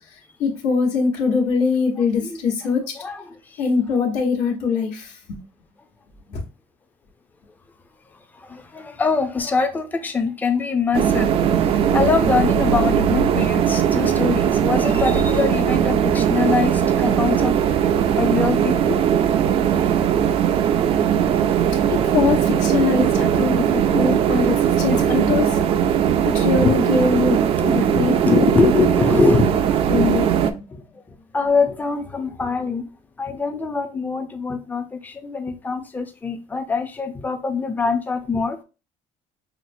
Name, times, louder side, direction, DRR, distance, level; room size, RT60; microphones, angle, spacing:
voice 1, 0.4-2.8 3.6-5.4 6.3-6.4 19.7-20.1 21.1-21.2 21.9-25.6 26.3-27.4 27.7-28.7 29.9-30.6, left 5 dB, 60° left, 1.2 m, -22 dB
voice 2, 3.0-3.6 8.3-11.3 11.6-17.6 18.2-19.0 24.9-25.0 25.4-25.5 26.6-26.7 27.6-29.7 31.3-32.9 33.2-38.6, left 4 dB, 10° left, 0.5 m, -23 dB
sound 1, 10.9-30.5, right 9 dB, 45° right, 0.3 m, -19 dB
5.7 x 2.1 x 2.6 m
cardioid pair, 145°, 14 cm